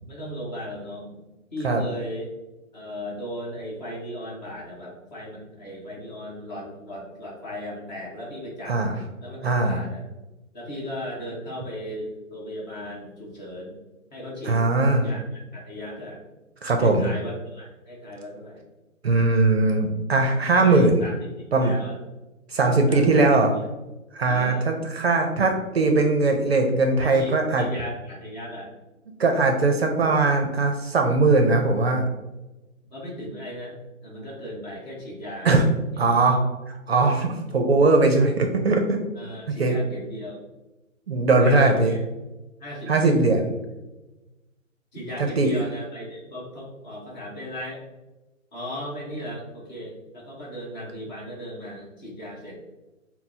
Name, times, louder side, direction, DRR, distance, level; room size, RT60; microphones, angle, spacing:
voice 1, 0.1-1.2 1.5-2.3 2.7-8.8 9.2-10.0 10.5-13.8 14.1-14.6 15.0-16.2 16.8-18.6 20.5-21.3 21.6-22.0 22.9-23.3 24.2-24.7 27.0-28.7 32.9-35.6 35.9-36.2 39.1-40.4 41.4-42.0 42.6-43.2 44.9-47.8 48.5-52.6, equal, 30° left, -4 dB, 1.2 m, -36 dB
voice 2, 9.4-9.8 14.4-15.0 16.6-17.1 19.0-21.0 21.5-21.8 22.5-23.5 24.1-27.7 29.2-32.1 35.4-35.6 36.0-36.4 36.9-39.0 39.5-39.8 41.1-41.9 42.9-43.5 45.0-45.1 45.4-45.5, right 3 dB, 50° right, 3 dB, 0.5 m, -20 dB
5.8 x 2.0 x 2.7 m, 1.1 s
figure-of-eight pair, 145°, 41 cm